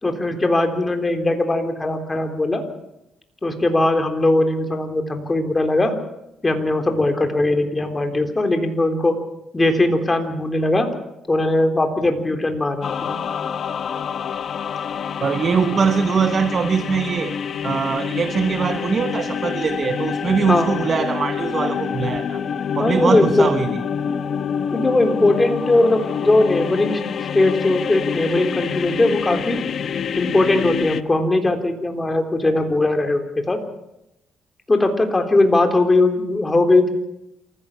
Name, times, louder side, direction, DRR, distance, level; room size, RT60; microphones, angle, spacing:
voice 1, 0.0-2.6 3.4-5.9 6.4-9.1 9.5-10.9 11.3-13.2 20.5-20.7 22.8-23.5 24.7-27.0 27.3-29.6 30.2-33.6 34.7-36.9, left 2 dB, 20° left, 3.6 m, -19 dB
sound 1, 12.8-31.0, left 7 dB, 55° left, 1.0 m, -27 dB
voice 2, 15.2-17.4 17.6-22.4 22.8-23.8, right 6 dB, 45° right, 1.0 m, -22 dB
27.5 x 15.5 x 7.3 m
cardioid pair, 90°, 0 cm